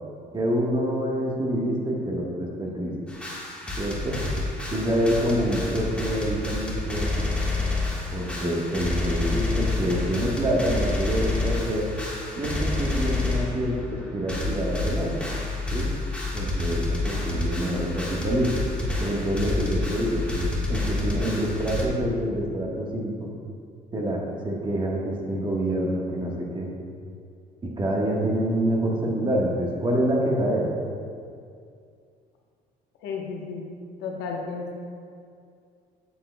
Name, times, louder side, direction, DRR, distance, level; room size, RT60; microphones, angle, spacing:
voice 1, 0.3-2.9 3.8-4.2 4.7-7.3 8.1-11.9 12.3-15.1 15.7-15.9 16.3-18.5 19.0-23.3 23.9-26.7 27.6-30.7, right 1 dB, 30° right, -2 dB, 1.3 m, -26 dB
sound 1, 3.1-13.7 14.0-14.1 14.3-21.8, left 2 dB, 5° left, 1.4 m, -29 dB
voice 2, 33.0-33.6 34.0-34.8, left 4 dB, 90° left, 0 dB, 1.0 m, -33 dB
8.4 x 7.4 x 2.2 m, 2.3 s
cardioid pair, 110°, 17 cm